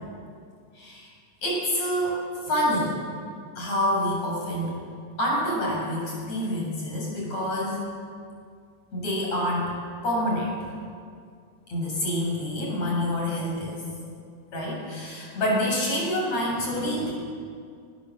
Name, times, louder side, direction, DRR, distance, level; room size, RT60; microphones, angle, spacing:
voice 1, 0.8-1.1 1.4-3.0 3.6-4.8 5.2-7.8 8.9-9.8 10.0-10.7 11.7-13.8 14.5-17.1, equal, 50° left, -3 dB, 8.8 m, -27 dB
23.5 x 20.0 x 7.7 m, 2.2 s
omnidirectional pair, 3.9 m